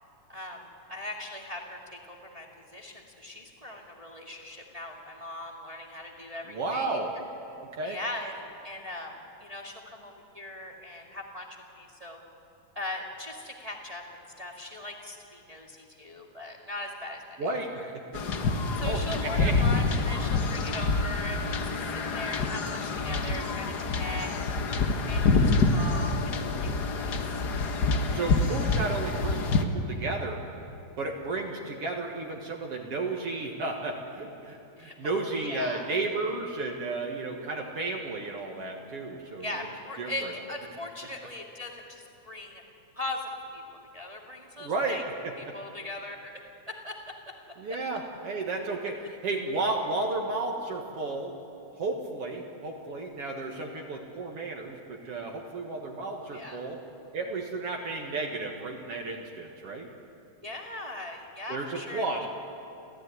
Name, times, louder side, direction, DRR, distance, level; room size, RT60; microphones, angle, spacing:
voice 1, 0.3-0.6 0.9-2.5 2.7-7.0 7.8-12.2 12.7-14.0 14.4-17.5 17.8-17.9 18.1-18.2 18.8-24.3 25.1-26.1 26.5-27.2 34.8-35.9 39.4-42.6 42.9-43.6 43.9-45.0 45.4-46.4 46.7-47.0 47.3-47.4 56.2-56.6 60.4-62.3, left 1 dB, 15° right, 0 dB, 1.7 m, -39 dB
voice 2, 6.5-7.1 7.6-8.0 17.4-17.8 18.1-18.2 18.9-19.6 28.1-30.4 31.0-39.7 40.0-40.3 44.6-45.3 47.6-51.3 51.8-56.8 57.1-59.9 61.5-62.3, right 3 dB, 55° right, 1 dB, 2.4 m, -33 dB
sound 1, 18.1-29.6, left 3 dB, 50° left, 1.2 m, -27 dB
30.0 x 14.5 x 9.6 m, 3.0 s
omnidirectional pair, 3.4 m